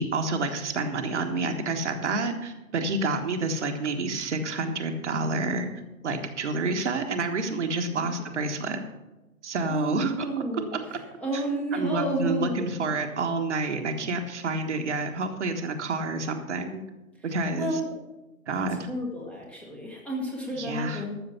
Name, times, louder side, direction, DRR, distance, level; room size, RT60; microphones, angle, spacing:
voice 1, 0.0-5.7 6.0-8.8 9.4-10.3 10.7-11.0 11.3-11.4 11.7-16.8 17.2-17.8 18.5-18.9 20.6-21.0, right 3 dB, 55° right, 5 dB, 1.4 m, -29 dB
voice 2, 7.9-8.3 9.7-10.8 11.2-12.8 17.5-17.9 18.9-21.2, right 1 dB, 5° left, -2 dB, 1.3 m, -31 dB
12.5 x 7.2 x 5.7 m, 1.0 s
figure-of-eight pair, 125°, 42 cm